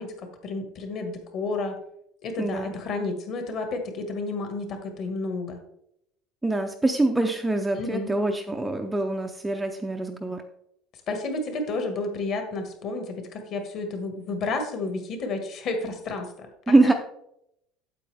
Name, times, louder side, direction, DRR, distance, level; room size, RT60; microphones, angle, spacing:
voice 1, 0.0-1.8 2.2-5.6 7.7-8.2 11.1-16.9, left 3 dB, 40° left, 5 dB, 1.6 m, -31 dB
voice 2, 2.4-2.7 6.4-10.4 16.7-16.9, right 2 dB, 5° right, 4 dB, 0.5 m, -24 dB
8.6 x 8.3 x 3.4 m, 0.75 s
cardioid pair, 170°, 0 cm